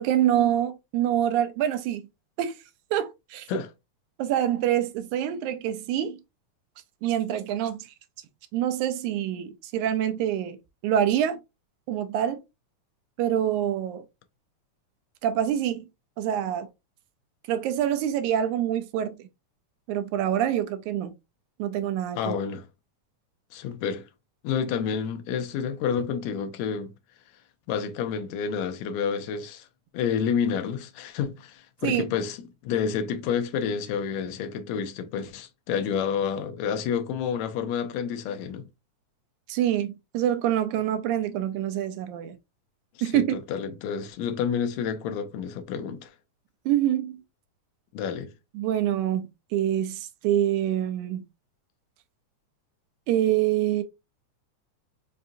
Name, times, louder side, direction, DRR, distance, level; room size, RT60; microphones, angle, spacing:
voice 1, 0.0-2.0 2.4-2.6 2.9-3.5 4.2-6.2 7.0-7.9 8.5-10.6 10.8-11.4 11.9-12.4 13.2-14.0 15.2-15.9 16.2-16.7 17.5-19.2 19.9-21.1 21.6-22.4 31.8-32.1 39.5-42.4 43.0-43.4 46.7-47.1 48.6-51.2 53.1-53.8, right 11 dB, 80° right, 1.9 m, -26 dB
voice 2, 22.2-22.6 23.5-24.1 24.4-26.9 27.7-29.7 29.9-38.7 42.9-46.1 47.9-48.3, left 7 dB, 80° left, 1.7 m, -29 dB
5.4 x 2.6 x 2.6 m
omnidirectional pair, 3.5 m